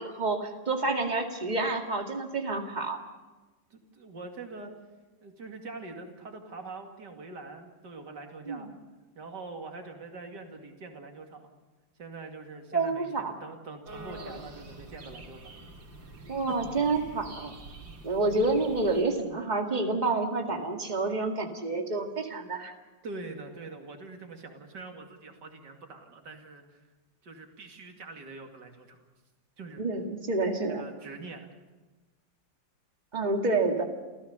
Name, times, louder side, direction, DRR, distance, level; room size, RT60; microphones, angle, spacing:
voice 1, 0.0-3.0 8.5-8.7 12.7-13.3 16.3-17.5 18.0-22.7 29.8-30.8 33.1-33.8, right 3 dB, 25° right, 3 dB, 2.1 m, -28 dB
voice 2, 3.7-4.7 5.2-8.7 9.1-11.5 12.0-15.5 23.0-26.8 27.2-29.0 29.6-29.8 30.7-31.5, right 3 dB, 60° right, 4 dB, 3.0 m, -44 dB
sound 1, 13.8-19.0, right 2 dB, 90° right, 3.3 m, -46 dB
28.0 x 15.0 x 6.8 m, 1.2 s
omnidirectional pair, 2.0 m